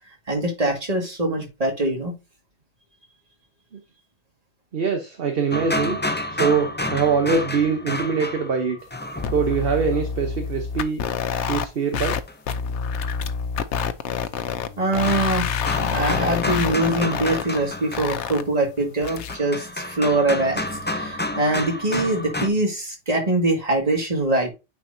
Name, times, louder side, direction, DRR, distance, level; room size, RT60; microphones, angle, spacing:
voice 1, 0.3-2.1 14.8-24.5, right 2 dB, 35° right, 2.0 m, -23 dB
voice 2, 4.7-6.0 6.4-8.8 9.3-11.0 11.5-12.2, right 5 dB, 55° right, 1.1 m, -23 dB
sound 1, 5.5-9.8 12.3-12.4 14.1-22.5, left 1 dB, 15° left, 0.4 m, -30 dB
sound 2, 9.2-11.7 11.9-12.2 12.5-14.7 14.9-17.6 17.9-18.4 19.0-19.4, left 7 dB, 80° left, 0.9 m, -27 dB
8.9 x 4.6 x 2.7 m
omnidirectional pair, 1.2 m